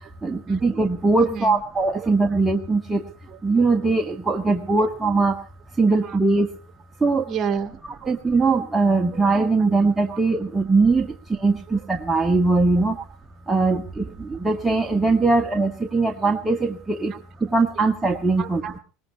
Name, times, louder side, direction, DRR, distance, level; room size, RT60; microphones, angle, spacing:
voice 1, 0.2-3.0 3.4-5.4 5.8-6.5 7.0-7.2 8.1-11.1 11.4-13.0 13.5-17.1 17.5-18.6, right 3 dB, 10° right, 3 dB, 1.7 m, -21 dB
voice 2, 1.2-1.6 2.0-2.1 3.3-3.6 5.9-6.2 7.1-8.1 9.1-9.3 9.6-9.7 10.1-10.2 13.0-13.1 17.1-17.2 18.4-18.8, right 6 dB, 35° right, 8 dB, 2.6 m, -32 dB
21.0 x 19.5 x 3.0 m, 0.36 s
hypercardioid pair, 95°, 0 cm